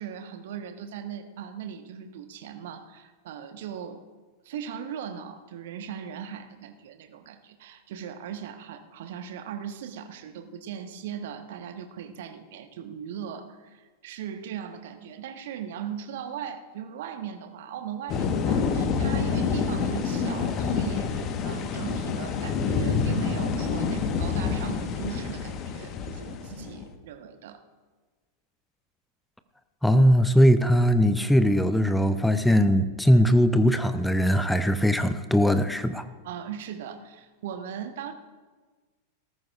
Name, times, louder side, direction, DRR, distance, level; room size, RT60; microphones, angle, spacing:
voice 1, 0.0-4.0 4.4-27.6 36.2-38.1, right 8 dB, 55° right, 8 dB, 1.1 m, -38 dB
sound 1, 18.1-26.9, left 5 dB, 35° left, 1.2 m, -27 dB
voice 2, 29.8-36.0, equal, 5° left, 11 dB, 0.6 m, -20 dB
18.5 x 14.0 x 2.4 m, 1.4 s
figure-of-eight pair, 90°, 0 cm